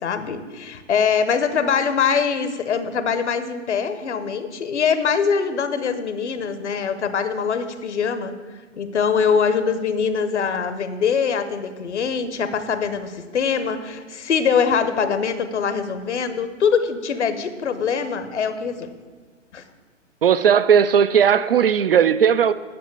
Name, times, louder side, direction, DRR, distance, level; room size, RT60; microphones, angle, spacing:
voice 1, 0.0-8.3 8.7-18.9 19.5-19.6, left 6 dB, 60° left, 1.0 m, -23 dB
voice 2, 20.2-22.5, right 8 dB, 50° right, 0.4 m, -16 dB
9.4 x 5.7 x 8.2 m
figure-of-eight pair, 120°, 38 cm